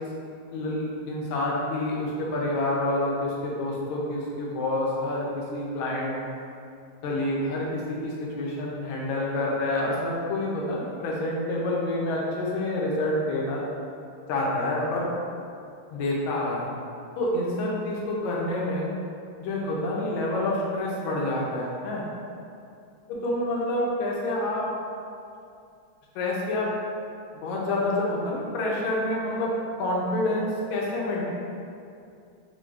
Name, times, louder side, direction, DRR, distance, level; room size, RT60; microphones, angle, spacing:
voice 1, 0.5-6.2 7.0-13.6 14.3-15.1 15.9-16.7 17.2-18.9 19.4-22.0 23.1-24.7 26.1-26.7 27.3-29.5 29.8-31.3, left 1 dB, 75° left, -3 dB, 1.4 m, -28 dB
4.4 x 2.3 x 2.3 m, 2.4 s
omnidirectional pair, 2.3 m